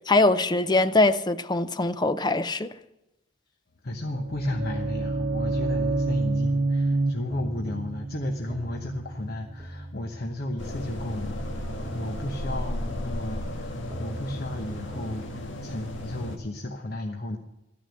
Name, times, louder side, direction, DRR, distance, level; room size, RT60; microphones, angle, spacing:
voice 1, 0.1-2.7, left 2 dB, 20° left, 0.6 m, -22 dB
voice 2, 3.8-11.4 11.9-17.4, left 1 dB, 55° left, 1.1 m, -33 dB
sound 1, 4.0-9.9, right 2 dB, 85° right, 0.7 m, -28 dB
sound 2, 6.2-15.2, equal, 5° left, 1.6 m, -44 dB
sound 3, 10.6-16.4, left 1 dB, 85° left, 1.6 m, -34 dB
14.0 x 10.0 x 6.4 m
head